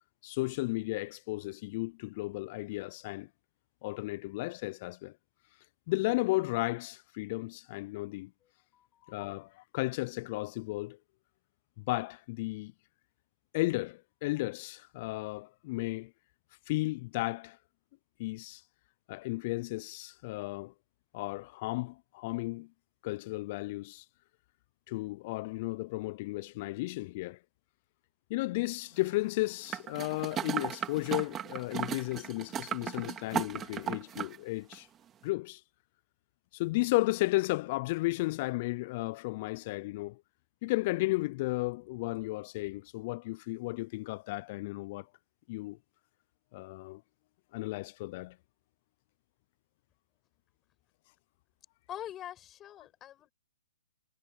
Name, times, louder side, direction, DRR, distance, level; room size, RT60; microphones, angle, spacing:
voice 1, 0.2-3.3 3.8-5.1 5.9-8.3 9.1-11.0 11.8-12.7 13.5-16.1 16.7-17.6 18.2-18.6 19.1-20.7 21.1-22.7 23.0-24.0 24.9-27.4 28.3-34.9 35.2-35.6 36.5-40.2 40.6-45.1 45.5-45.8 46.5-47.0 47.5-48.4, left 21 dB, 40° left, 0.6 m, -34 dB
voice 2, 8.7-9.0 51.9-53.3, left 11 dB, 20° left, 6.7 m, -44 dB
sound 1, 29.7-34.4 34.7-34.8, right 10 dB, 20° right, 3.6 m, -36 dB
hypercardioid pair, 125°, 0 cm